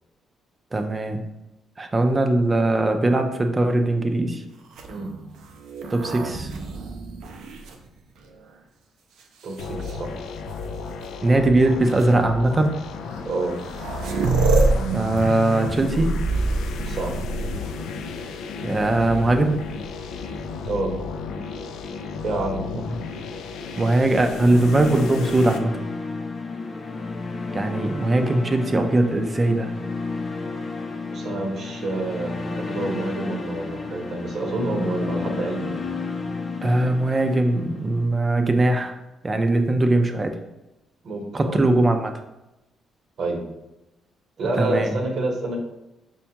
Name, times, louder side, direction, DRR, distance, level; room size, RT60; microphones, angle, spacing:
voice 1, 0.7-1.3 1.8-4.4 5.9-6.5 11.2-12.8 14.9-16.1 18.6-19.6 23.8-25.8 27.5-29.7 36.6-39.0 39.2-40.4 41.3-42.1 44.6-44.9, right 2 dB, 25° right, 6 dB, 0.4 m, -20 dB
sound 1, 4.7-8.5 9.2-9.9 11.0-11.1 11.8-12.0 13.2-13.3 13.4-17.9 19.8-20.5, right 3 dB, 80° right, 0.4 m, -27 dB
voice 2, 9.4-10.1 13.2-13.6 16.9-17.2 20.6-20.9 22.2-22.6 31.1-35.8 41.0-41.6 43.2-43.4 44.4-45.6, right 2 dB, 65° right, 1 dB, 0.8 m, -28 dB
sound 2, 9.6-25.6, left 4 dB, 80° left, 0.3 m, -34 dB
sound 3, 24.3-38.4, left 3 dB, 35° left, 0.6 m, -32 dB
5.3 x 2.2 x 2.8 m, 0.95 s
cardioid pair, 90°, 0 cm